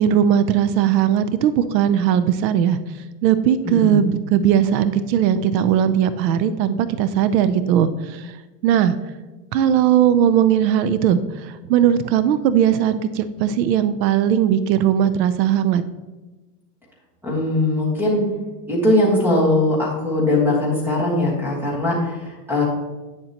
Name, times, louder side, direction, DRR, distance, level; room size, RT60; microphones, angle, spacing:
voice 1, 0.0-2.8 3.2-8.4 8.6-9.0 9.5-15.8, right 9 dB, 85° right, 13 dB, 0.7 m, -18 dB
voice 2, 3.6-4.0 17.2-18.2 18.7-22.7, left 2 dB, 5° right, -5 dB, 1.5 m, -20 dB
9.1 x 6.6 x 2.9 m, 1.2 s
supercardioid pair, 170°, 49 cm